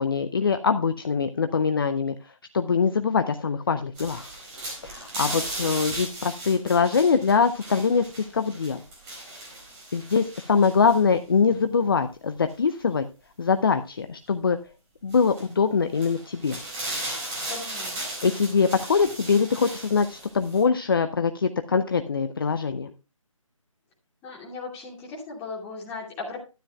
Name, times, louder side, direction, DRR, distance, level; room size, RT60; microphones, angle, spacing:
voice 1, 0.0-2.1 2.5-4.3 4.8-8.0 8.3-8.8 9.9-13.0 13.4-14.6 15.0-16.6 18.2-22.9, left 5 dB, 40° left, 9 dB, 0.7 m, -23 dB
sound 1, 4.0-11.0 12.5-12.6 15.1-15.4 15.9-20.6, right 1 dB, 15° right, 4.2 m, -36 dB
voice 2, 5.3-5.7 17.5-18.0 24.2-26.4, left 4 dB, 10° left, -3 dB, 2.6 m, -37 dB
12.5 x 9.9 x 2.3 m, 0.30 s
figure-of-eight pair, 155°, 17 cm